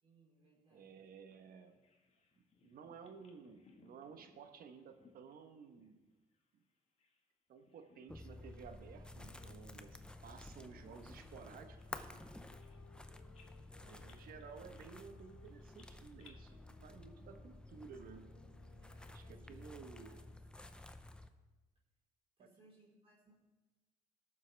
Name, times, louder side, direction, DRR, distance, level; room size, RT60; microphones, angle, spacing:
voice 1, 0.0-1.0 10.5-10.8 13.6-14.2 18.8-20.4 22.4-23.3, right 1 dB, 35° right, -6 dB, 4.0 m, -68 dB
voice 2, 0.7-1.8 2.4-6.0 6.5-6.6 7.5-12.3 13.7-18.4 19.1-20.2 22.4-22.5, right 6 dB, 60° right, 8 dB, 1.1 m, -55 dB
Bird vocalization bird call bird song, 1.3-7.3 7.6-8.5 8.8-9.0 9.6-13.0 13.3-16.3, left 4 dB, 40° left, 1.7 m, -69 dB
sound 1, 8.1-21.3, left 1 dB, 5° left, 0.6 m, -53 dB
sound 2, 9.3-16.0 16.4-19.4, left 5 dB, 85° left, 2.5 m, -68 dB
18.0 x 7.4 x 3.4 m, 1.2 s
cardioid pair, 110°, 17 cm